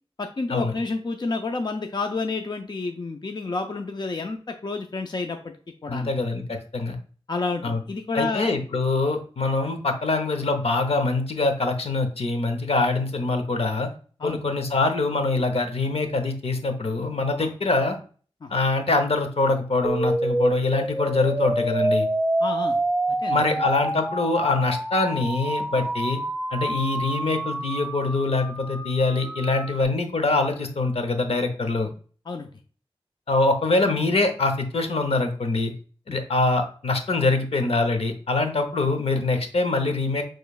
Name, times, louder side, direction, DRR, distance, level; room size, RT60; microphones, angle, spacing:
voice 1, 0.2-5.5 5.8-6.1 7.3-8.5 14.2-14.4 17.4-17.5 18.4-18.5 22.4-22.8 23.2-23.4 25.8-25.9 26.6-26.7 32.3-32.5 36.1-36.2, left 3 dB, 45° left, 5 dB, 0.5 m, -30 dB
voice 2, 5.9-7.0 7.6-7.8 8.1-13.9 14.2-18.0 18.5-22.1 23.3-26.2 26.5-31.9 33.3-35.7 36.1-40.2, left 3 dB, 75° left, 6 dB, 0.8 m, -24 dB
sound 1, 19.8-29.8, right 1 dB, 5° right, 0.5 m, -27 dB
6.7 x 3.1 x 2.4 m, 0.41 s
wide cardioid pair, 80°, 10 cm